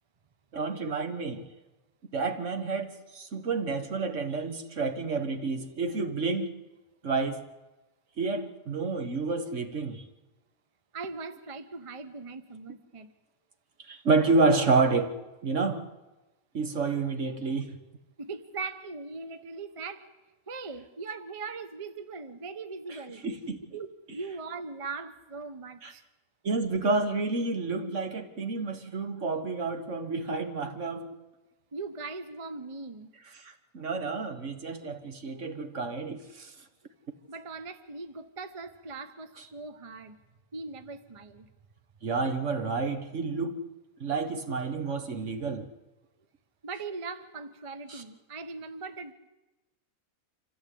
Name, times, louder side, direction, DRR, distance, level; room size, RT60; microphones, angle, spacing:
voice 1, 0.5-1.4 2.1-6.5 7.0-7.4 8.2-10.0 13.8-15.1 15.4-15.8 16.5-17.8 23.2-23.6 25.8-25.9 26.4-31.1 33.3-36.5 42.0-43.6 44.0-45.7 47.9-48.0, right 3 dB, 55° right, 1.7 m, -29 dB
voice 2, 10.9-13.1 18.2-20.0 20.5-23.2 23.7-26.0 31.7-33.1 37.3-40.2 40.5-41.5 46.6-49.1, right 4 dB, 30° right, 0.8 m, -40 dB
26.0 x 14.5 x 8.5 m
omnidirectional pair, 1.5 m